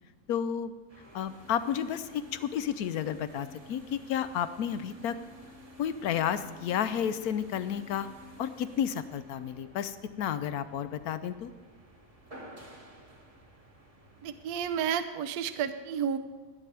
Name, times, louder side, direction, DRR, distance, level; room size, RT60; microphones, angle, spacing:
voice 1, 0.3-0.7 1.1-5.2 5.8-8.1 8.4-11.5, left 9 dB, 70° left, 12 dB, 1.0 m, -31 dB
sound 1, 0.9-14.9, left 1 dB, 20° right, 1.3 m, -52 dB
voice 2, 14.2-16.2, right 8 dB, 65° right, 9 dB, 1.1 m, -31 dB
20.5 x 9.3 x 3.3 m, 1.4 s
omnidirectional pair, 1.9 m